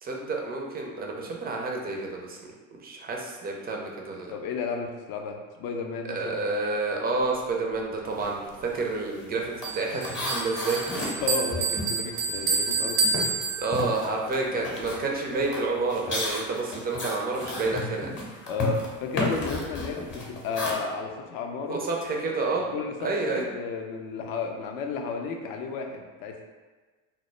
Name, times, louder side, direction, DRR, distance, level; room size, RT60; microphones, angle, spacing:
voice 1, 0.0-2.5 2.8-4.3 6.1-11.0 13.6-18.1 21.7-22.6 23.0-23.5, right 3 dB, 25° right, 0 dB, 0.4 m, -29 dB
voice 2, 4.3-6.4 11.2-13.1 18.5-21.8 22.7-26.4, left 4 dB, 55° left, 3 dB, 0.5 m, -33 dB
sound 1, 8.1-8.4 8.6-12.7 13.0-20.7, left 2 dB, 25° left, 0.8 m, -34 dB
Bell, 9.6-14.1, right 4 dB, 85° right, 0.8 m, -29 dB
2.0 x 2.0 x 3.1 m, 1.3 s
hypercardioid pair, 75°, 43 cm